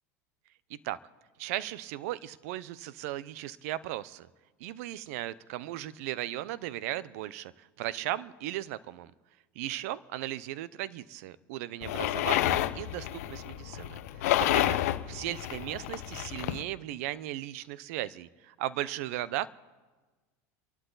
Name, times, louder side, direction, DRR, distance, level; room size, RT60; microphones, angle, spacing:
voice 1, 1.4-4.3 4.6-9.1 9.6-14.0 14.4-14.8 15.1-19.5, right 14 dB, 75° right, 18 dB, 0.7 m, -36 dB
sound 1, 11.8-16.6, left 14 dB, 85° left, 0.8 m, -30 dB
28.5 x 12.0 x 4.0 m, 1.3 s
supercardioid pair, 115°, 8 cm